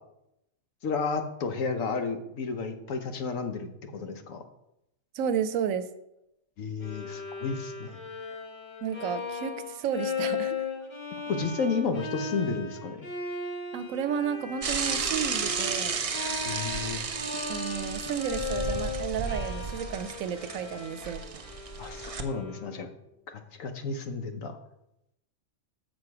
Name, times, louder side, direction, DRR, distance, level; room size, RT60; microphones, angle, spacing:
voice 1, 0.8-4.4 6.6-8.0 11.3-13.0 16.4-17.0 21.8-22.9 23.3-24.6, left 4 dB, 75° left, 7 dB, 1.2 m, -32 dB
voice 2, 5.1-5.8 8.8-10.7 13.7-16.0 17.5-21.2, right 8 dB, 80° right, 12 dB, 1.0 m, -32 dB
Bowed string instrument, 6.8-22.9, left 5 dB, 40° left, 1.0 m, -37 dB
Bicycle / Mechanisms, 14.6-22.2, right 5 dB, 60° right, 0.3 m, -33 dB
6.8 x 6.3 x 4.8 m, 0.84 s
omnidirectional pair, 1.4 m